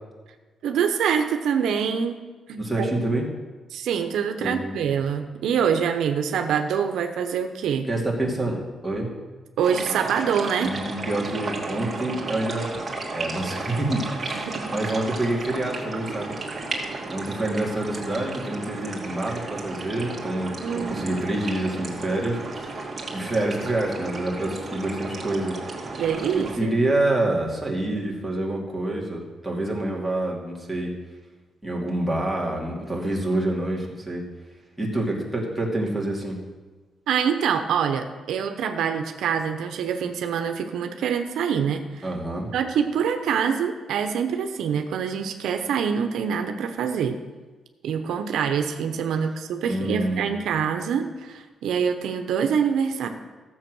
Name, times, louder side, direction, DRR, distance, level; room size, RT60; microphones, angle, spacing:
voice 1, 0.6-2.2 2.5-3.0 3.7-7.9 9.6-10.7 11.8-11.9 14.3-14.7 20.6-21.0 26.0-26.7 37.1-42.1 42.5-47.2 47.8-53.1, right 7 dB, 85° right, 6 dB, 0.9 m, -25 dB
voice 2, 2.6-3.3 4.4-4.8 7.9-8.6 8.8-9.1 10.6-12.7 13.1-16.3 17.1-25.6 26.3-30.9 31.6-34.2 34.8-36.4 42.0-42.5 49.6-50.3, right 1 dB, ahead, -2 dB, 2.7 m, -27 dB
sound 1, 9.6-26.6, right 3 dB, 25° right, 2.4 m, -34 dB
14.0 x 7.5 x 6.3 m, 1.3 s
cardioid pair, 115°, 0 cm